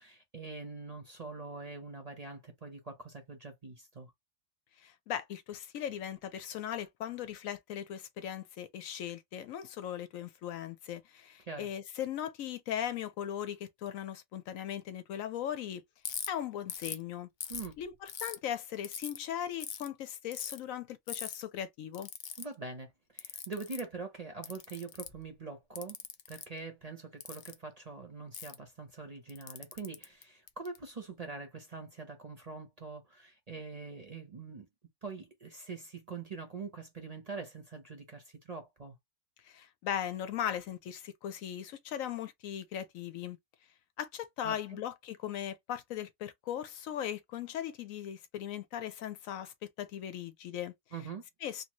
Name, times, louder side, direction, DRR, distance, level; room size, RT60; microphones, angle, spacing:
voice 1, 0.0-4.1 11.5-11.7 17.5-17.7 22.4-26.0 26.3-34.7 35.0-39.0 44.4-44.8 50.9-51.2, right 4 dB, 35° right, 0.7 m, -44 dB
voice 2, 4.8-15.8 16.3-17.3 17.8-22.1 39.4-43.4 44.0-50.7 51.4-51.6, left 10 dB, 75° left, 1.0 m, -38 dB
Ratchet pawl, 16.0-16.3 16.7-17.0 17.4-18.4 18.8-19.2 19.6-19.9 20.3-20.6 21.1-21.3 21.9-22.4 23.2-23.8 24.4-25.2 25.7-26.4 27.2-27.5 28.3-28.5 29.3-30.8, left 8 dB, 90° left, 0.4 m, -40 dB
3.0 x 2.6 x 2.9 m
omnidirectional pair, 1.5 m